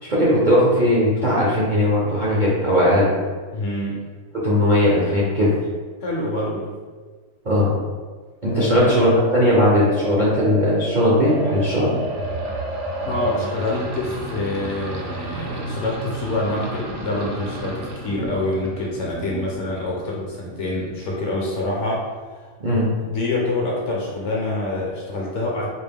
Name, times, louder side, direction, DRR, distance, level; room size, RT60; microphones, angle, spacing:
voice 1, 0.0-3.1 4.3-5.5 7.4-7.7 8.4-11.9 22.6-22.9, left 1 dB, 45° right, -7 dB, 0.6 m, -18 dB
voice 2, 3.5-4.1 6.0-6.8 8.6-8.9 13.1-22.0 22.3-22.5 23.0-25.7, left 2 dB, 60° left, -3 dB, 1.0 m, -26 dB
sound 1, 8.4-13.4, right 1 dB, 80° left, 0.4 m, -29 dB
sound 2, 11.1-20.4, right 2 dB, 65° right, 0.9 m, -34 dB
4.3 x 2.2 x 3.4 m, 1.5 s
omnidirectional pair, 1.6 m